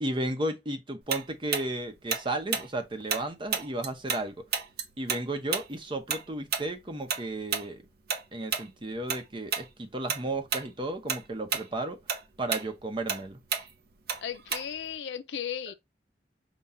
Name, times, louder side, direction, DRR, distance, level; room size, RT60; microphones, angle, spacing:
voice 1, 0.0-4.3 5.0-7.8 8.3-12.0 12.4-13.4, right 1 dB, 30° right, 0.8 m, -33 dB
Tick-tock, 1.1-4.2 4.5-9.2 9.5-9.7 10.1-10.7 11.0-14.9, right 6 dB, 60° right, 0.7 m, -32 dB
voice 2, 14.2-15.7, left 8 dB, 85° left, 0.5 m, -35 dB
5.6 x 2.3 x 3.6 m
head